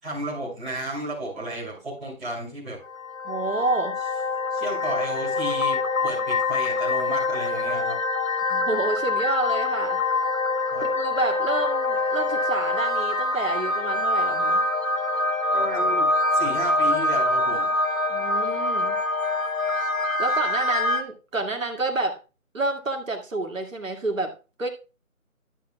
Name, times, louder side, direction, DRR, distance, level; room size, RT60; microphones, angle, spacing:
voice 1, 0.0-2.8 4.5-8.0 10.7-10.8 15.5-16.1 16.3-17.7, right 1 dB, ahead, -19 dB, 1.3 m, -33 dB
sound 1, 2.9-21.0, left 2 dB, 70° left, 1.4 m, -25 dB
voice 2, 3.2-4.0 8.5-10.0 10.8-14.6 18.1-19.0 20.2-22.2 22.5-24.7, right 2 dB, 65° right, 3 dB, 2.4 m, -28 dB
12.5 x 8.4 x 2.3 m, 0.31 s
figure-of-eight pair, 165°, 42 cm